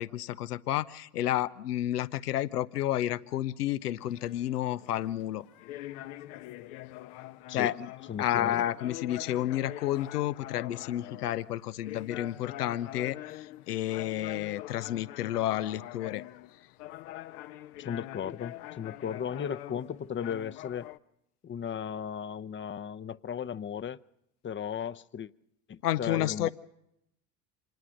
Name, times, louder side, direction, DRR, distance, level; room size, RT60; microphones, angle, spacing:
voice 1, 0.0-5.4 7.5-7.9 8.2-16.2 25.8-26.5, left 13 dB, 85° left, 0.9 m, -31 dB
sound 1, 3.8-21.0, left 15 dB, 70° left, 1.1 m, -45 dB
voice 2, 8.1-8.6 17.8-20.9 21.4-24.0 24.4-25.3 25.7-26.5, left 8 dB, 25° left, 0.8 m, -36 dB
27.0 x 20.0 x 6.4 m
hypercardioid pair, 70°, 45 cm